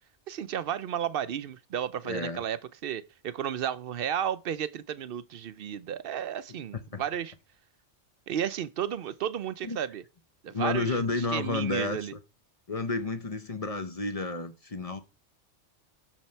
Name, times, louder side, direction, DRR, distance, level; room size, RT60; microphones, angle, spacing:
voice 1, 0.3-7.3 8.3-10.0 10.4-12.1, right 9 dB, 60° right, 0.7 m, -33 dB
voice 2, 2.0-2.4 6.9-7.0 9.6-9.8 10.5-12.0 12.7-15.0, left 3 dB, 35° left, 0.7 m, -31 dB
7.2 x 6.7 x 4.3 m
omnidirectional pair, 1.2 m